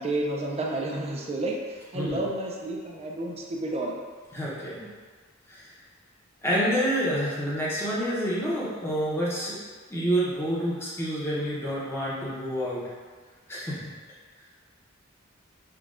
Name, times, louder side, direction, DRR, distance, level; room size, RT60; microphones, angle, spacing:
voice 1, 0.0-4.0 4.8-4.9, right 2 dB, 30° right, -1 dB, 0.4 m, -31 dB
voice 2, 4.3-4.8 5.5-5.7 6.4-9.6 9.9-12.9 13.5-13.9, equal, 10° left, -7 dB, 0.8 m, -28 dB
5.9 x 2.3 x 2.5 m, 1.5 s
head